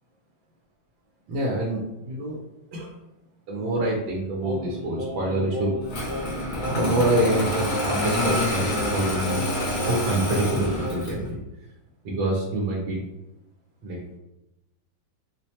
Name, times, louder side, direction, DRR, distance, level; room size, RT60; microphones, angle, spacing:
voice 1, 1.3-2.4 2.7-2.9 3.5-5.7 6.6-9.4 9.9-11.4 12.0-13.0 13.8-14.0, right 1 dB, 85° right, -3 dB, 1.5 m, -26 dB
Singing, 4.4-11.2, equal, 60° right, 0.9 m, -36 dB
Engine starting, 5.9-11.3, left 1 dB, 55° left, 1.0 m, -27 dB
4.5 x 2.1 x 2.8 m, 0.93 s
omnidirectional pair, 2.1 m